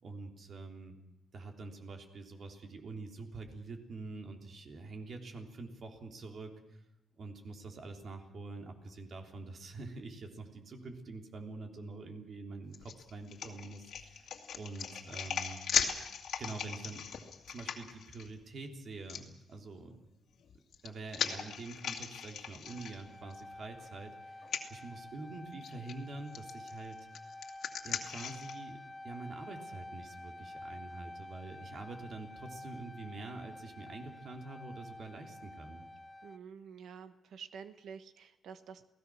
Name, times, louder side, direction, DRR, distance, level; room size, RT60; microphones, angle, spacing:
voice 1, 0.0-1.0 1.3-6.8 7.2-14.3 14.5-15.6 16.4-17.1 17.5-20.0 20.8-27.0 27.8-35.8, right 3 dB, 55° right, 3 dB, 3.5 m, -46 dB
sound 1, 12.7-18.3 19.1-19.2 20.4-23.4 23.8-23.9 24.4-24.6 25.6-25.9 26.3-28.6, left 7 dB, 70° left, 2.3 m, -38 dB
sound 2, 22.6-36.4, left 1 dB, 25° left, 1.3 m, -49 dB
voice 2, 36.2-38.8, right 7 dB, 75° right, 11 dB, 1.2 m, -49 dB
29.0 x 18.0 x 6.4 m, 0.85 s
cardioid pair, 105°, 0 cm